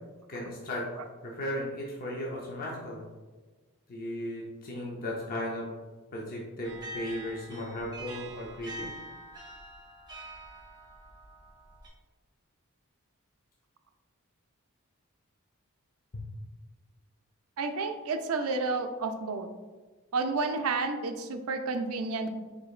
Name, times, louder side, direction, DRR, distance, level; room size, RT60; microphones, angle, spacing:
voice 1, 0.3-0.8 1.2-3.1 3.9-5.7 6.1-8.9 16.1-16.2, left 1 dB, 40° left, -3 dB, 0.7 m, -36 dB
sound 1, 6.6-11.9, right 1 dB, 20° right, 1.3 m, -45 dB
voice 2, 17.6-19.5 20.1-22.4, right 3 dB, 80° right, 7 dB, 0.5 m, -31 dB
4.8 x 4.0 x 2.4 m, 1.3 s
head